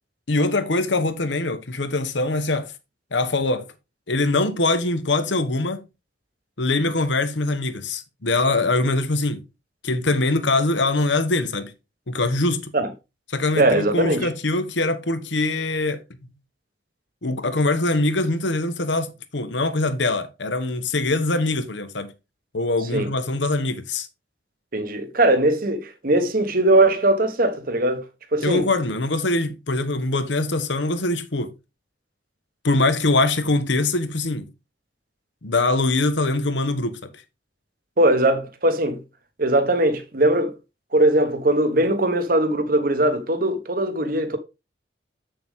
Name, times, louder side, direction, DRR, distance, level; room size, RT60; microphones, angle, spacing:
voice 1, 0.3-2.7 3.1-3.7 4.1-5.8 6.6-9.4 9.8-11.7 12.1-12.7 13.3-16.0 17.2-22.1 22.5-24.1 28.4-31.5 32.6-34.5 35.4-37.1, left 2 dB, 75° left, 1.2 m, -23 dB
voice 2, 13.5-14.3 22.9-23.1 24.7-28.1 28.3-28.7 38.0-39.0 39.4-40.6 40.9-44.4, right 1 dB, 50° right, 1.2 m, -20 dB
7.8 x 6.8 x 3.6 m
head